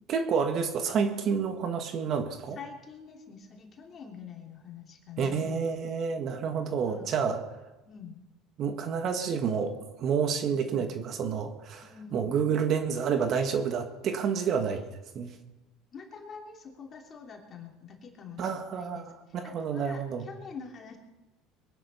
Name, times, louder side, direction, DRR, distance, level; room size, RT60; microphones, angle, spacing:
voice 1, 0.1-2.6 5.2-7.4 8.6-11.9 12.1-14.8 15.1-15.3 18.4-20.2, right 6 dB, 45° right, 6 dB, 1.7 m, -29 dB
voice 2, 2.5-5.8 6.8-7.1 7.8-8.2 10.5-10.9 11.8-12.3 15.9-19.1 19.4-21.0, left 6 dB, 30° left, 1 dB, 3.1 m, -46 dB
22.5 x 10.0 x 5.6 m, 1.0 s
cardioid pair, 130°, 0 cm